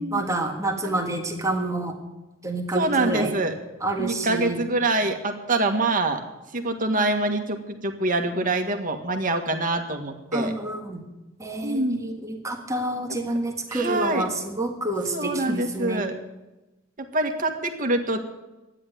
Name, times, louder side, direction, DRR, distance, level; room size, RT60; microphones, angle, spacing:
voice 1, 0.0-1.9 2.4-3.3 3.8-4.6 10.3-11.0 11.4-16.0, right 2 dB, 15° right, 1 dB, 1.6 m, -28 dB
voice 2, 2.7-3.5 4.0-6.2 6.5-10.5 11.6-12.0 13.7-14.3 15.1-16.1 17.1-18.2, right 2 dB, 45° right, 5 dB, 1.7 m, -25 dB
12.5 x 9.9 x 9.3 m, 1.0 s
head